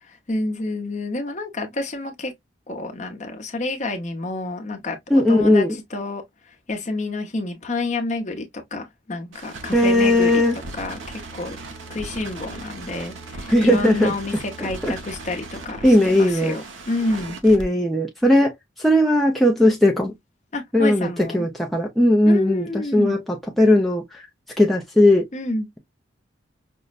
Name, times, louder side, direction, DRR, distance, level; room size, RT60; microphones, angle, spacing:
voice 1, 0.3-2.3 2.7-5.0 5.3-6.2 6.7-8.5 8.7-10.4 10.7-11.6 11.9-17.4 20.5-21.4 22.3-23.2 25.3-25.7, left 2 dB, 40° left, 0.7 m, -29 dB
voice 2, 5.1-5.8 9.7-10.6 13.5-14.1 14.6-14.9 15.8-16.6 17.4-20.1 20.7-24.2 24.6-25.3, left 1 dB, ahead, 0.4 m, -18 dB
sound 1, 9.3-17.6, right 3 dB, 80° right, 0.7 m, -37 dB
5.3 x 2.1 x 2.4 m
head